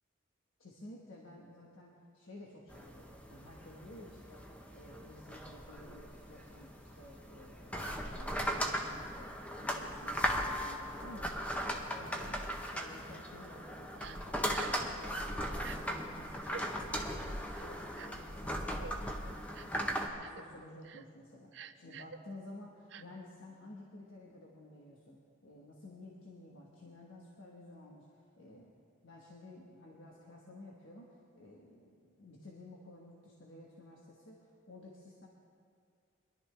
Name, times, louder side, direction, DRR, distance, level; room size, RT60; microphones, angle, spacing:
voice 1, 0.6-4.4 4.7-28.7 29.0-34.4 34.7-35.3, left 1 dB, 75° left, -2 dB, 1.4 m, -53 dB
sound 1, 2.7-20.1, equal, 5° left, 0.8 m, -38 dB
Crying sobbing, 14.0-14.2 14.5-14.8 15.6-15.8 16.4-16.6 17.5-18.2 18.8-18.9 19.5-19.8 20.2-20.4 20.8-21.0 21.5-22.2 22.9-23.0, right 7 dB, 60° right, 0.4 m, -48 dB
22.0 x 12.0 x 3.4 m, 2.2 s
head